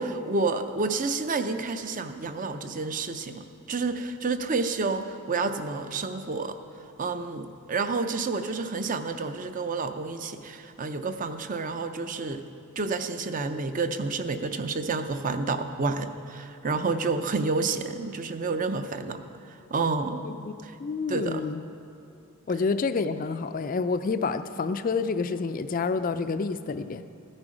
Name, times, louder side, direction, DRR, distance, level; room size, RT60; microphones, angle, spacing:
voice 1, 0.0-6.6 7.0-12.5 12.8-19.2 19.7-20.2 20.6-20.8 21.1-21.5, right 3 dB, 35° right, 9 dB, 0.6 m, -29 dB
voice 2, 20.8-21.6 22.5-27.1, left 4 dB, 40° left, 11 dB, 0.4 m, -28 dB
15.0 x 9.8 x 5.0 m, 2.6 s
head